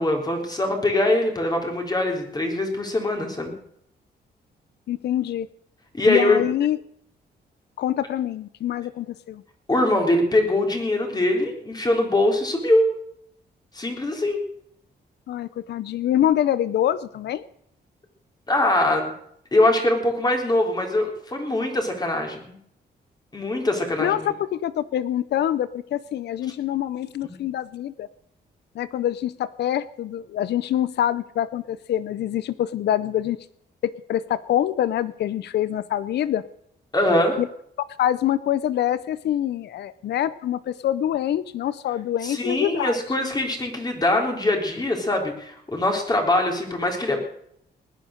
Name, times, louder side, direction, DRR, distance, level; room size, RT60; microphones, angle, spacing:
voice 1, 0.0-3.5 5.9-6.4 9.7-12.9 13.7-14.4 18.5-19.1 19.5-22.6 23.3-24.2 27.2-27.4 36.9-37.4 42.2-47.2, left 1 dB, 25° left, 2 dB, 3.8 m, -22 dB
voice 2, 4.9-5.5 6.1-6.8 7.8-9.4 15.3-17.4 24.0-28.1 28.7-33.4 33.8-36.4 37.4-37.5 38.0-43.0, left 11 dB, 75° left, 17 dB, 0.6 m, -25 dB
19.5 x 10.5 x 6.5 m, 0.70 s
cardioid pair, 105°, 17 cm